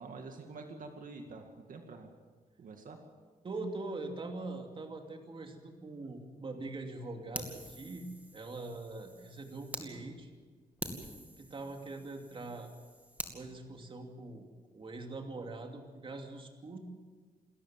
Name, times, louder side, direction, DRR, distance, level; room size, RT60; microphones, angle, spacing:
voice 1, 0.0-2.1 2.6-3.0, right 3 dB, 60° right, 3 dB, 2.2 m, -47 dB
voice 2, 3.4-10.3 11.4-12.7 13.3-14.5 14.7-16.8, right 2 dB, 35° right, 3 dB, 2.7 m, -43 dB
Fire, 7.3-9.9 10.3-10.4 10.8-13.4, right 1 dB, 10° right, 2.4 m, -45 dB
28.0 x 14.0 x 7.6 m, 1.5 s
wide cardioid pair, 145°, 16 cm